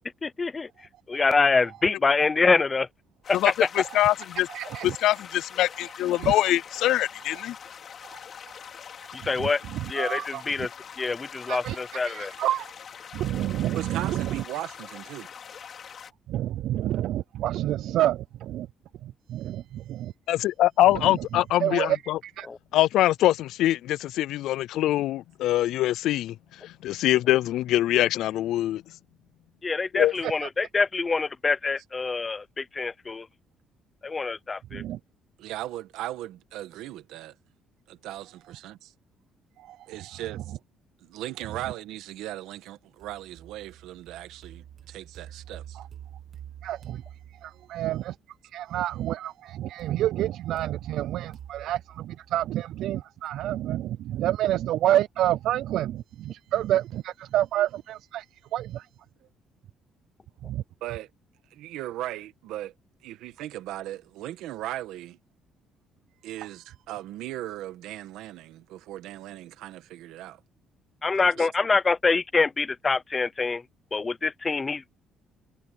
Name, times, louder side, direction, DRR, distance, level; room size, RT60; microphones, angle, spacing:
voice 1, 0.2-0.7 1.1-2.9 3.3-3.5 9.1-9.6 9.9-10.7 11.0-12.3 22.4-22.6 29.6-33.3 34.0-34.8 71.0-73.6 73.9-74.9, left 4 dB, 20° left, 0.7 m, -25 dB
sound 1, 3.2-16.1, left 7 dB, 35° left, 4.9 m, -44 dB
voice 2, 3.3-4.5 4.8-7.5 20.3-22.2 22.7-26.3 26.6-28.8 29.9-30.1, left 14 dB, 65° left, 0.3 m, -23 dB
voice 3, 4.5-5.0 6.1-6.3 8.1-8.2 9.4-9.5 10.0-10.4 11.5-11.8 12.1-12.7 13.1-14.4 16.3-18.7 19.0-20.1 21.0-21.1 21.6-22.5 30.2-30.5 34.7-35.0 39.7-39.8 45.8-45.9 46.6-47.0 47.4-48.1 48.5-58.3 58.5-58.9 60.4-60.6, right 13 dB, 60° right, 0.4 m, -28 dB
voice 4, 13.8-15.3 30.0-30.1 35.4-37.3 37.9-38.9 39.9-40.4 41.0-45.8 47.4-47.7 60.8-61.1 61.5-62.7 63.0-65.2 66.2-70.4 71.4-71.5, right 14 dB, 85° right, 1.8 m, -38 dB
sound 2, 43.0-48.0 49.8-52.8, right 10 dB, 40° right, 2.1 m, -47 dB
cardioid pair, 180°, 0 cm